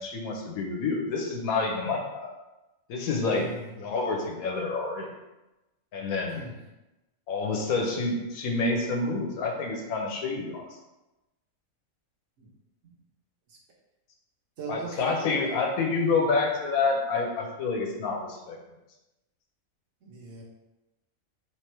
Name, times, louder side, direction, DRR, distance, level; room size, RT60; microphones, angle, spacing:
voice 1, 0.0-2.3 2.9-3.5 3.8-5.1 5.9-6.4 7.3-10.7 14.7-18.6, left 3 dB, 85° left, 2 dB, 1.2 m, -28 dB
voice 2, 3.2-3.7 6.3-6.6 12.4-12.5 12.8-12.9 13.5-13.6 14.6-15.6 16.0-16.2 20.0-20.4, right 3 dB, 65° right, -2 dB, 1.3 m, -40 dB
3.4 x 3.3 x 4.5 m, 1.0 s
omnidirectional pair, 1.4 m